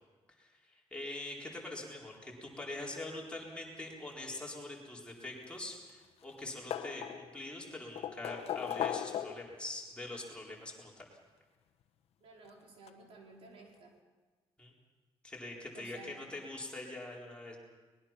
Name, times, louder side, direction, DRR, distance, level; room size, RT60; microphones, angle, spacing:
voice 1, 0.4-11.1 14.6-14.7 15.2-17.6, left 2 dB, 10° left, -3 dB, 4.2 m, -44 dB
sound 1, 5.3-6.0 6.3-7.4 8.0-9.6 10.8-10.9 12.4-12.5 12.9-13.0, left 10 dB, 80° left, 1.2 m, -38 dB
voice 2, 12.2-14.0 15.7-16.3, right 3 dB, 70° right, 0 dB, 4.5 m, -55 dB
23.5 x 20.5 x 6.0 m, 1.3 s
cardioid pair, 150°, 10 cm